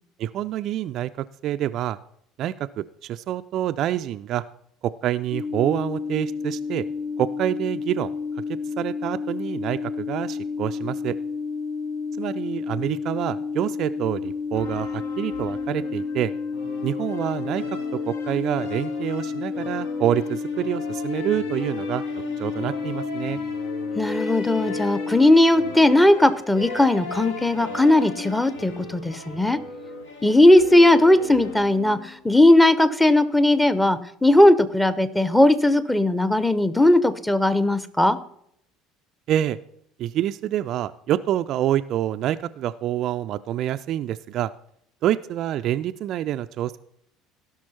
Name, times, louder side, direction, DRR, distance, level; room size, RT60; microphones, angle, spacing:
voice 1, 0.2-2.0 2.4-4.4 4.8-6.9 7.2-8.1 8.8-11.1 12.2-16.3 16.8-17.6 18.1-22.0 22.4-23.4 39.3-39.6 40.0-44.5 45.0-46.8, right 12 dB, 45° right, 10 dB, 0.4 m, -27 dB
sound 1, 5.3-25.3, left 5 dB, 45° left, 1.0 m, -30 dB
sound 2, 14.5-32.3, left 3 dB, 65° left, 1.2 m, -38 dB
voice 2, 24.0-29.6 30.2-38.2, left 1 dB, 5° left, 14 dB, 0.8 m, -18 dB
16.0 x 6.2 x 4.2 m, 0.71 s
figure-of-eight pair, 60°, 0 cm